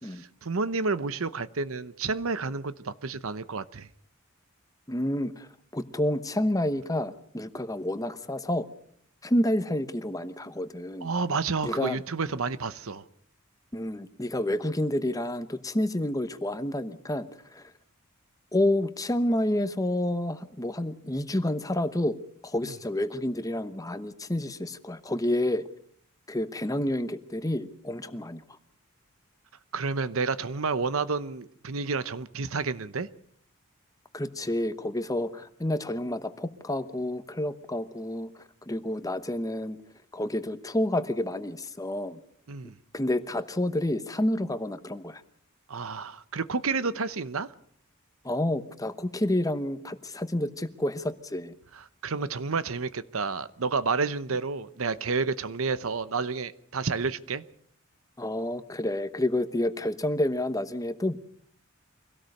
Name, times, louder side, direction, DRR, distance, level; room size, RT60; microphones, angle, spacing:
voice 1, 0.1-3.9 11.0-13.0 22.6-22.7 29.7-33.1 42.5-42.7 45.7-47.5 51.7-57.4, right 4 dB, 70° right, 0.9 m, -30 dB
voice 2, 4.9-8.7 9.2-11.1 11.6-12.0 13.7-17.3 17.5-17.6 18.5-22.2 22.4-25.6 26.3-28.4 34.1-38.3 38.7-39.8 40.1-42.2 42.9-45.2 48.2-51.5 58.2-61.2, left 1 dB, 15° left, 1.0 m, -29 dB
24.5 x 17.5 x 6.6 m
head